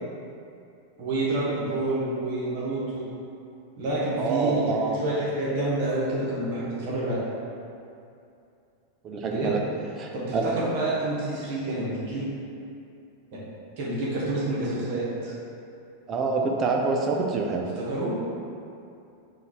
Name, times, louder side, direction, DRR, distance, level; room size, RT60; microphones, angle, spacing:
voice 1, 1.0-3.0 3.8-7.2 9.3-9.5 10.1-12.3 13.8-15.3 17.8-18.1, right 2 dB, 50° right, -7 dB, 1.2 m, -28 dB
voice 2, 4.2-5.0 9.0-9.6 10.0-10.5 16.1-17.7, right 4 dB, 30° right, 1 dB, 0.5 m, -26 dB
3.8 x 2.5 x 4.6 m, 2.6 s
figure-of-eight pair, 90°, 0 cm